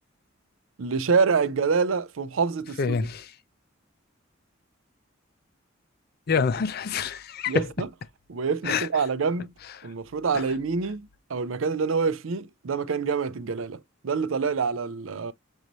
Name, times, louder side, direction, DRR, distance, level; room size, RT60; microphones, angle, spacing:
voice 1, 0.8-3.0 6.3-6.4 7.5-7.9 8.3-9.5 9.8-15.3, right 5 dB, 85° right, 0.5 m, -26 dB
voice 2, 2.8-3.3 6.3-7.7 8.6-8.9 9.8-9.9, left 5 dB, 50° left, 0.5 m, -26 dB
6.3 x 2.7 x 3.0 m
head